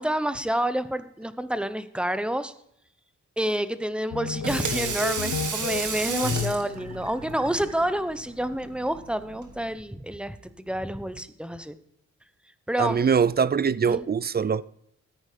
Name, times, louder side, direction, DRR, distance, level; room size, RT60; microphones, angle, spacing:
voice 1, 0.0-2.5 3.4-11.8 12.7-13.0 13.9-14.0, right 1 dB, 5° right, 0.8 m, -28 dB
sound 1, 4.1-7.7, left 9 dB, 85° left, 0.7 m, -33 dB
Water tap faucet / Sink (filling or washing), 4.2-9.7, right 5 dB, 85° right, 1.9 m, -34 dB
voice 2, 12.8-14.6, right 6 dB, 35° right, 0.4 m, -23 dB
14.0 x 8.9 x 5.0 m
cardioid pair, 75°, 30 cm